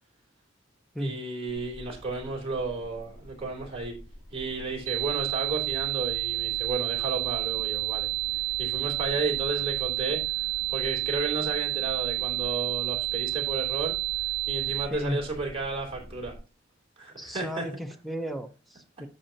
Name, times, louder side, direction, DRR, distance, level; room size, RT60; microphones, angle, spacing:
voice 1, 1.0-4.0 4.3-8.1 8.6-14.0 14.5-16.3 17.0-17.6, right 3 dB, 30° right, 3.2 m, -33 dB
sound 1, 1.5-16.4, equal, 75° left, 2.5 m, -47 dB
sound 2, 4.9-14.9, right 22 dB, 75° right, 0.7 m, -30 dB
voice 2, 14.9-15.2 17.2-19.1, equal, ahead, 0.8 m, -34 dB
10.5 x 6.7 x 2.8 m
head